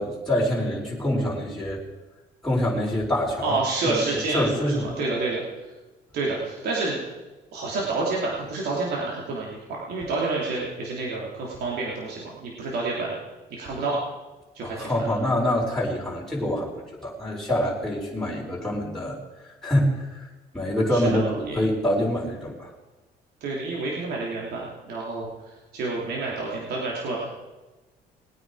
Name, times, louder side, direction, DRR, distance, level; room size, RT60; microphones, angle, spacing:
voice 1, 0.0-1.8 2.4-3.6 3.8-5.0 14.6-16.7 17.0-19.2 19.6-20.1 20.5-22.7, left 1 dB, ahead, -5 dB, 4.3 m, -25 dB
voice 2, 3.4-5.4 6.1-7.0 7.5-13.2 13.5-14.0 14.5-15.1 18.2-18.5 20.9-21.6 23.4-27.2, right 3 dB, 70° right, -3 dB, 3.1 m, -29 dB
20.0 x 9.1 x 5.0 m, 1.1 s
cardioid pair, 110°, 17 cm